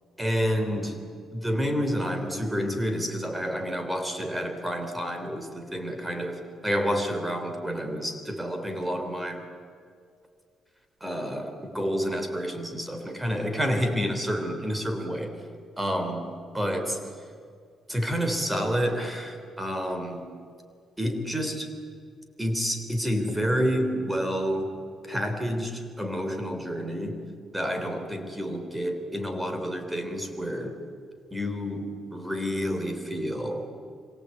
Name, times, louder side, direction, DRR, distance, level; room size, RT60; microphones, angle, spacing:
voice 1, 0.2-1.0 1.3-9.4 11.0-15.4 15.8-17.0 17.9-20.3 21.0-21.7 22.4-24.7 25.0-27.2 27.5-30.8 31.3-33.7, equal, 10° right, 6 dB, 3.4 m, -29 dB
26.0 x 23.5 x 8.5 m, 2.3 s
cardioid pair, 90°, 0 cm